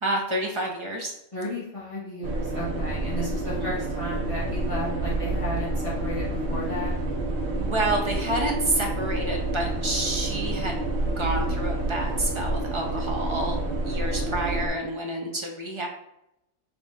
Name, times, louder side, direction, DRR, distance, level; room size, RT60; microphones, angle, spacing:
voice 1, 0.0-1.1 3.5-3.7 7.5-10.8 11.2-13.6 13.8-15.9, right 1 dB, 40° right, 0 dB, 0.4 m, -29 dB
voice 2, 1.3-6.9 8.8-8.9, equal, 25° left, -8 dB, 1.4 m, -34 dB
sound 1, 2.2-14.7, right 2 dB, 60° right, 0.8 m, -28 dB
3.5 x 2.8 x 4.0 m, 0.82 s
omnidirectional pair, 1.4 m